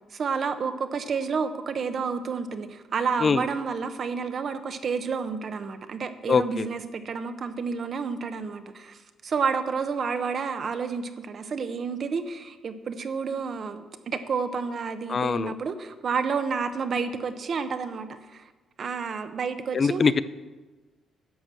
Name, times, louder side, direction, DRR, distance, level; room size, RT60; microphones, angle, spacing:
voice 1, 0.1-18.4 18.8-20.0, right 5 dB, 50° right, 10 dB, 0.9 m, -30 dB
voice 2, 6.3-6.7 15.1-15.5 19.7-20.2, left 5 dB, 40° left, 15 dB, 0.4 m, -22 dB
10.5 x 6.1 x 7.4 m, 1.3 s
cardioid pair, 90°, 0 cm